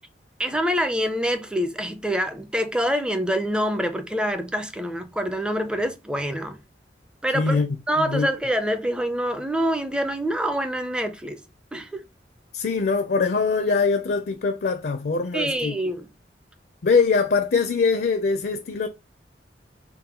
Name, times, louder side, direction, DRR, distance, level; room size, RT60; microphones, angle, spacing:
voice 1, 0.4-6.6 7.2-7.6 7.9-11.4 11.7-12.0 15.3-16.1, equal, 5° right, 0.4 m, -26 dB
voice 2, 7.3-8.3 12.5-15.8 16.8-18.9, left 4 dB, 60° left, 0.5 m, -23 dB
3.8 x 2.2 x 4.1 m
head